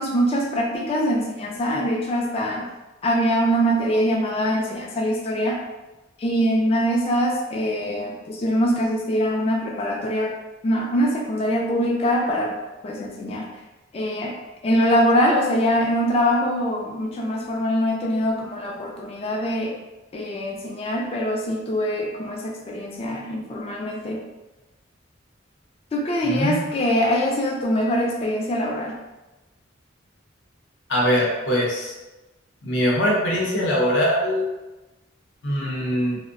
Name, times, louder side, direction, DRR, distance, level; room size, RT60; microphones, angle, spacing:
voice 1, 0.0-2.7 3.0-5.6 6.2-10.3 10.6-12.6 12.8-13.5 13.9-14.4 14.6-19.7 20.1-24.2 25.9-29.0, equal, 30° left, -1 dB, 0.3 m, -23 dB
voice 2, 26.2-26.7 30.9-31.9 32.6-34.5 35.4-36.2, equal, 70° left, -4 dB, 0.7 m, -22 dB
2.5 x 2.0 x 2.4 m, 1.1 s
head